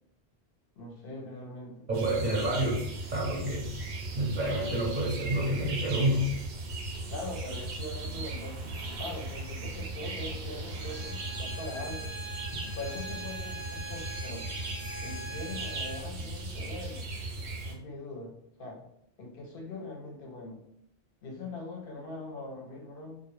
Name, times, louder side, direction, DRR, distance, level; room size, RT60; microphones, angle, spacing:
voice 1, 0.8-1.9 7.1-12.2 12.7-14.5 15.0-17.0 17.6-18.3 18.6-18.8 19.2-20.6 21.2-23.2, left 2 dB, 65° left, 0 dB, 0.7 m, -41 dB
voice 2, 1.9-2.8 3.1-3.7 4.1-6.3, right 1 dB, 50° right, -3 dB, 0.6 m, -28 dB
sound 1, 1.9-17.8, right 2 dB, 85° right, 0.9 m, -37 dB
Bowed string instrument, 10.7-16.1, right 1 dB, 20° left, 0.4 m, -42 dB
2.1 x 2.0 x 2.9 m, 0.73 s
omnidirectional pair, 1.1 m